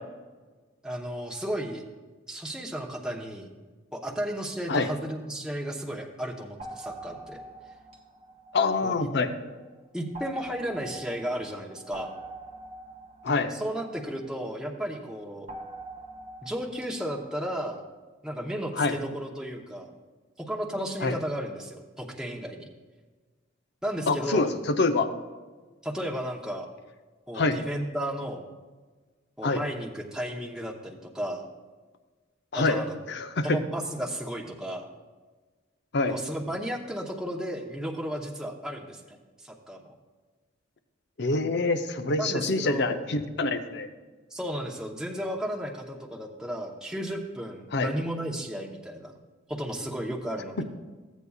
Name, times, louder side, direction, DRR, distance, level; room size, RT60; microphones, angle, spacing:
voice 1, 0.8-1.8 2.3-3.5 3.9-7.4 8.8-9.1 9.9-12.1 13.5-15.5 16.4-17.8 18.2-19.9 20.4-22.7 23.8-24.5 25.8-26.7 27.3-28.5 29.4-31.5 32.5-32.9 33.4-34.8 36.1-39.9 42.2-43.0 44.3-49.1 49.5-50.6, equal, 5° right, -1 dB, 0.8 m, -34 dB
sound 1, 6.6-9.4 10.1-14.7 15.5-17.3, right 2 dB, 30° right, 1.0 m, -44 dB
voice 2, 8.5-9.3 13.2-13.5 18.8-19.0 21.0-21.1 24.1-25.1 27.3-27.6 29.4-29.6 32.5-32.8 33.1-33.6 35.9-36.2 41.2-43.9 47.7-47.9 50.6-50.7, left 3 dB, 55° left, 8 dB, 0.7 m, -26 dB
15.0 x 8.2 x 2.4 m, 1.4 s
head